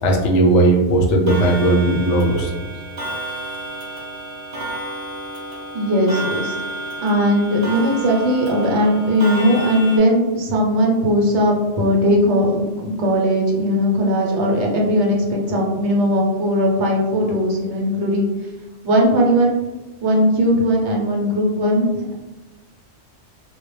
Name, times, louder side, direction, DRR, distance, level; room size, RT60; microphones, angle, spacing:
voice 1, 0.0-2.5, right 2 dB, 75° left, 0 dB, 0.9 m, -16 dB
Clock, 1.3-10.0, right 1 dB, 45° right, 0.4 m, -31 dB
voice 2, 5.7-6.5 7.0-18.3 18.8-19.6 20.0-22.1, equal, 70° right, -1 dB, 0.9 m, -18 dB
2.2 x 2.1 x 3.0 m, 1.2 s
omnidirectional pair, 1.2 m